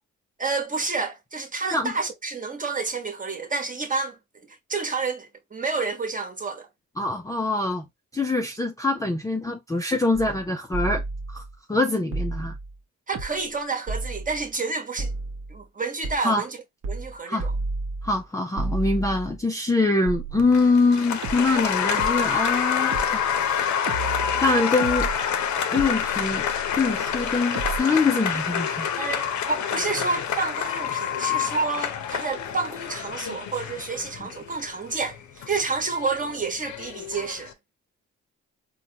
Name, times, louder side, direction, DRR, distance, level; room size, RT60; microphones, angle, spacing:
voice 1, 0.4-4.2 4.7-6.7 13.1-15.1 15.5-16.6 16.9-17.5 29.0-37.5, right 4 dB, 25° right, 1.1 m, -29 dB
voice 2, 7.0-7.9 8.1-11.4 11.7-12.5 16.2-16.5 17.3-17.5 18.0-23.6 24.4-25.1 25.7-26.5 26.8-28.9, left 3 dB, 10° left, 0.4 m, -24 dB
sound 1, 10.1-10.4 10.7-11.5 12.1-12.8 13.1-13.6 13.9-14.5 15.0-15.6 16.0-16.2 16.8-17.1 17.4-18.2 18.6-19.4 20.1-20.8 21.2-27.8, right 3 dB, 60° right, 0.9 m, -33 dB
Applause, 20.4-37.5, left 8 dB, 70° left, 0.7 m, -28 dB
4.1 x 2.2 x 2.8 m
cardioid pair, 90°, 30 cm